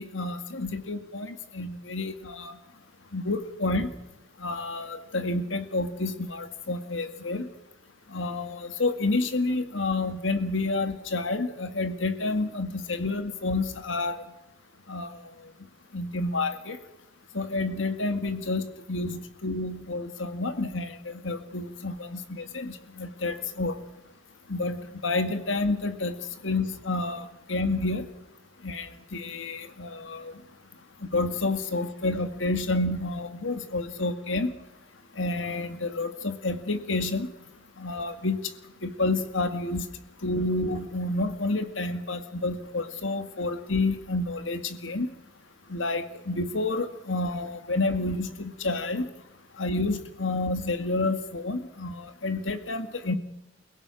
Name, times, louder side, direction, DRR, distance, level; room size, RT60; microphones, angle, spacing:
voice 1, 0.0-2.6 3.1-3.9 4.4-7.5 8.1-14.2 14.9-15.3 15.9-16.8 17.3-23.7 24.5-26.2 26.4-28.1 28.6-30.3 31.1-34.5 35.2-37.3 37.8-38.4 38.8-39.9 40.2-45.1 45.7-49.1 49.6-53.1, left 2 dB, 75° left, 8 dB, 2.0 m, -29 dB
29.5 x 16.5 x 6.4 m, 0.97 s
head